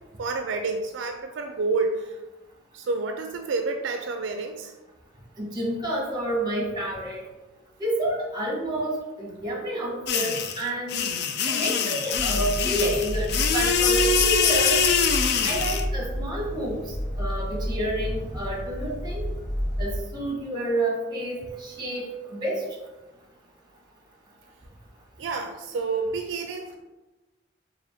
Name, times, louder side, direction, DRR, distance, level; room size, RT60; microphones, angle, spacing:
voice 1, 0.2-2.2 2.7-4.7 25.2-26.8, right 3 dB, 70° right, 5 dB, 0.4 m, -29 dB
voice 2, 5.4-7.2 7.8-11.0 11.5-14.8 15.4-16.8 17.2-19.2 19.8-22.6, right 1 dB, 25° right, -1 dB, 1.0 m, -29 dB
sound 1, 10.1-15.8, left 5 dB, 60° left, 0.4 m, -24 dB
sound 2, 12.1-20.0, equal, 30° left, 1.2 m, -31 dB
4.9 x 2.5 x 3.4 m, 1.1 s
head